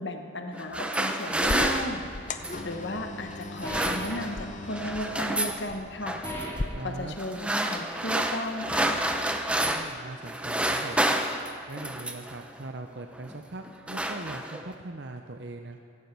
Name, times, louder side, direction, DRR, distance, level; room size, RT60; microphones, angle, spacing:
voice 1, 0.0-2.0 2.6-6.3 6.8-9.0, left 1 dB, 55° left, 4 dB, 1.1 m, -35 dB
sound 1, 0.5-2.7 3.4-4.4 4.7-5.6 6.1-6.5 7.2-10.0 10.2-12.4 13.1-13.4 13.6-14.7, right 1 dB, 5° right, 0.7 m, -29 dB
sound 2, 1.4-6.7, left 2 dB, 35° left, 0.6 m, -38 dB
sound 3, 3.6-4.3 6.2-6.8 8.7-9.1, equal, 15° left, 4.0 m, -36 dB
voice 2, 6.7-7.2 9.6-11.2 11.7-15.8, right 2 dB, 55° right, 5 dB, 0.8 m, -40 dB
17.0 x 16.0 x 4.6 m, 2.8 s
head